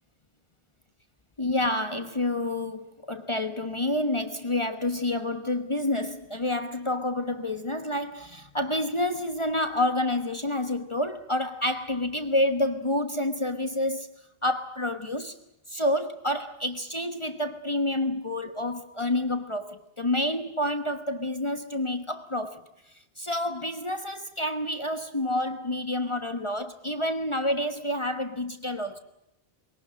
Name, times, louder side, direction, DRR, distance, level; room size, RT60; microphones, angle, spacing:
voice 1, 1.4-14.1 14.4-15.3 15.7-22.6 23.2-29.0, left 1 dB, 30° left, 1.2 m, -28 dB
23.0 x 18.0 x 8.8 m
omnidirectional pair, 1.1 m